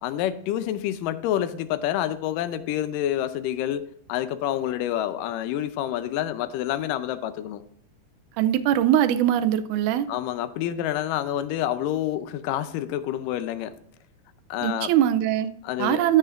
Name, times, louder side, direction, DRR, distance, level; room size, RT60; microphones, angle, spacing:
voice 1, 0.0-7.6 10.1-13.7 14.5-14.9 15.6-16.0, left 12 dB, 80° left, 2.2 m, -28 dB
voice 2, 8.4-10.1 14.6-15.5 15.8-16.2, right 11 dB, 80° right, 1.9 m, -21 dB
15.5 x 6.7 x 2.5 m
omnidirectional pair, 4.0 m